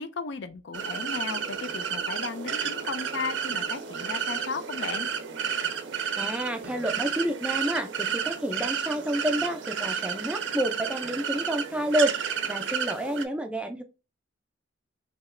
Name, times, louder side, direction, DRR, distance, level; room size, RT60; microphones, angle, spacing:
voice 1, 0.0-5.1, left 4 dB, 65° left, 0.4 m, -35 dB
sound 1, 0.7-13.3, right 7 dB, 70° right, 0.5 m, -31 dB
voice 2, 6.2-13.8, right 1 dB, 5° right, 0.3 m, -29 dB
2.8 x 2.3 x 3.1 m
head